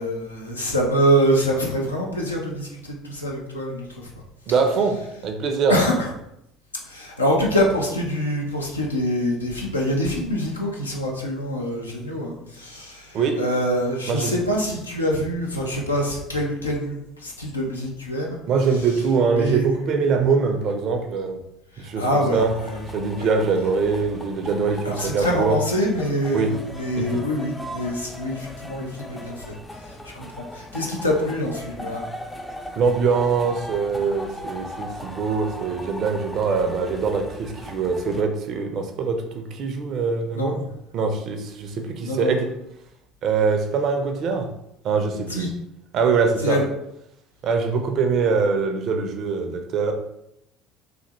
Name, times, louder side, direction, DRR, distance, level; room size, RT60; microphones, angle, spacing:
voice 1, 0.0-4.1 5.7-6.1 6.8-18.4 19.3-19.6 21.7-22.8 23.2-23.3 24.8-29.6 29.8-32.0 40.3-40.5 42.0-42.3 45.3-45.5 46.4-46.6, equal, 85° left, -1 dB, 0.5 m, -25 dB
voice 2, 4.5-5.8 13.1-13.4 14.1-14.3 18.5-21.4 21.8-22.5 22.9-25.6 26.3-26.5 27.0-27.2 32.8-40.7 40.9-42.5 43.2-44.5 44.8-45.5 45.9-46.6 47.4-49.9, right 5 dB, 50° right, 5 dB, 0.4 m, -23 dB
sound 1, 22.4-38.2, left 1 dB, 10° left, 0.4 m, -38 dB
3.3 x 2.4 x 2.9 m, 0.81 s
figure-of-eight pair, 60°, 0 cm